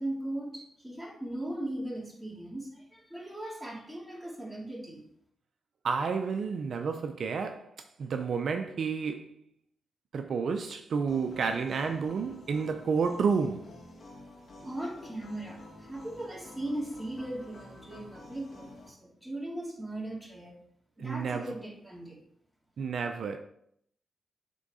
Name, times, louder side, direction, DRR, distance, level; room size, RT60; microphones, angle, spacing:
voice 1, 0.0-5.0 14.6-20.6 21.0-22.2, right 1 dB, 5° right, 2.6 m, -38 dB
voice 2, 5.8-7.7 8.0-9.3 10.1-13.7 21.0-21.5 22.8-23.4, right 5 dB, 70° right, 0.5 m, -30 dB
sound 1, 11.1-18.9, left 1 dB, 55° left, 2.0 m, -50 dB
8.8 x 3.7 x 3.7 m
cardioid pair, 65°, 0 cm